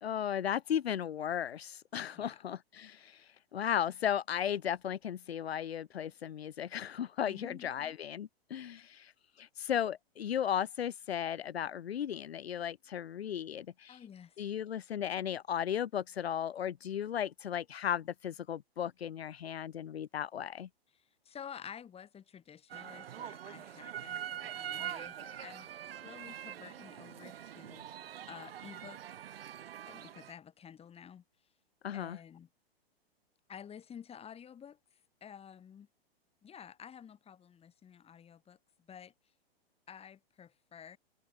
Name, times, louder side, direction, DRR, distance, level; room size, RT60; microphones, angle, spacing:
voice 1, 0.0-9.1 9.4-14.0 14.4-20.7 31.8-32.2, left 9 dB, 75° left, 1.6 m, -35 dB
voice 2, 2.1-2.4 7.2-8.0 8.7-9.1 13.9-14.4 21.0-29.0 29.9-31.2 31.9-32.5 33.5-34.8 35.2-35.9 36.4-38.6 38.9-39.1 39.9-41.0, left 8 dB, 20° left, 6.4 m, -51 dB
sound 1, 22.7-30.3, right 10 dB, 70° right, 5.9 m, -44 dB
hypercardioid pair, 125°, 31 cm